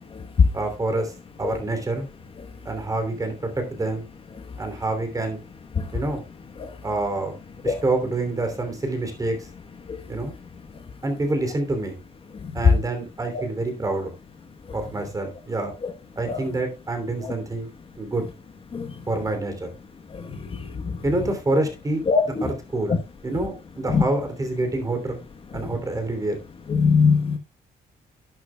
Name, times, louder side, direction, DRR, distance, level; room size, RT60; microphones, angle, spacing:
voice 1, 0.5-1.1 1.4-2.1 2.6-4.1 4.6-5.4 5.9-6.2 6.8-7.3 7.6-9.5 10.1-10.3 11.0-12.0 12.5-14.1 14.7-15.7 16.2-17.7 18.0-18.3 19.1-19.7 21.0-22.0 22.4-23.0 23.2-25.2 25.5-26.4, right 2 dB, 20° right, 3.0 m, -27 dB
voice 2, 20.2-21.0 22.1-22.2 23.9-24.0 26.7-27.4, left 5 dB, 35° left, 1.2 m, -21 dB
11.5 x 11.0 x 2.3 m
cardioid pair, 140°, 16 cm